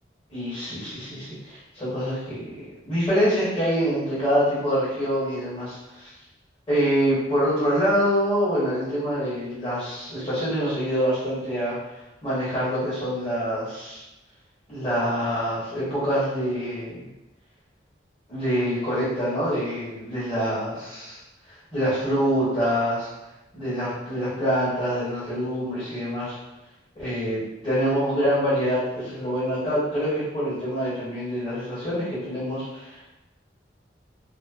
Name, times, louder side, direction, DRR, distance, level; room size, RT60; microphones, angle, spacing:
voice 1, 0.3-2.6 2.8-6.1 6.7-11.7 12.2-14.0 14.7-17.0 18.3-21.2 21.7-23.1 23.5-26.3 26.9-33.1, equal, 30° left, -12 dB, 1.1 m, -25 dB
2.3 x 2.2 x 2.4 m, 0.98 s
head